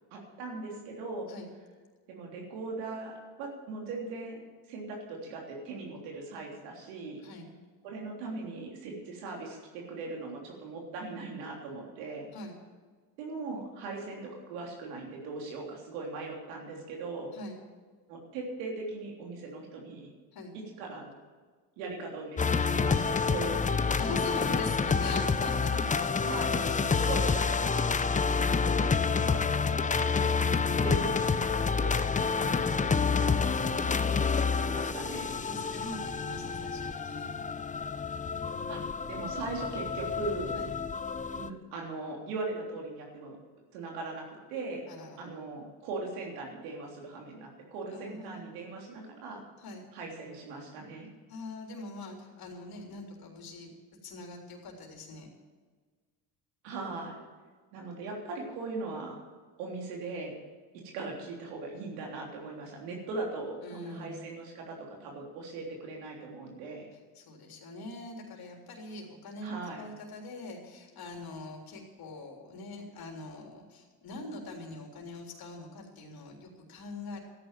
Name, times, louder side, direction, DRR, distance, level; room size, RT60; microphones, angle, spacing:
voice 1, 0.1-1.3 2.1-4.4 4.7-7.2 7.8-12.3 13.2-17.3 18.1-20.1 20.5-21.1 21.8-24.2 26.2-27.9 28.3-33.4 34.0-34.3 34.6-35.4 38.7-38.8 39.1-40.5 41.3-43.4 43.7-44.9 45.2-49.4 49.9-51.1 56.6-57.2 57.7-59.2 59.6-60.3 60.9-66.9 69.4-69.8, right 3 dB, 85° right, 0 dB, 3.4 m, -39 dB
sound 1, 22.4-41.5, left 5 dB, 15° left, 0.6 m, -28 dB
voice 2, 24.0-26.4 33.6-34.2 35.4-37.3 40.6-40.7 44.9-45.3 47.9-48.5 49.6-49.8 51.3-53.7 54.0-55.3 63.6-64.3 67.1-77.2, left 2 dB, 50° left, 0 dB, 3.7 m, -43 dB
13.0 x 10.0 x 7.5 m, 1.5 s
supercardioid pair, 80°, 46 cm